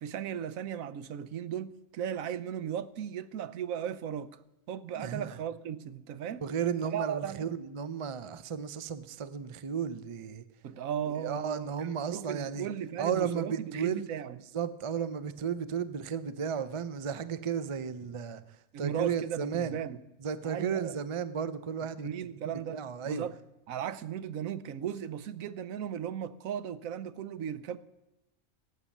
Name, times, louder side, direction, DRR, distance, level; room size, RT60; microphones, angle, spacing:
voice 1, 0.0-4.3 4.7-6.5 6.9-7.5 10.6-14.4 18.7-20.0 20.4-21.0 22.0-23.4 23.7-27.8, right 9 dB, 80° right, 1.1 m, -36 dB
voice 2, 5.0-5.3 6.4-10.4 11.2-12.7 13.0-14.1 14.5-18.4 18.8-19.8 20.2-22.1 22.7-23.3, right 7 dB, 40° right, 0.4 m, -34 dB
18.0 x 8.2 x 7.3 m
omnidirectional pair, 1.4 m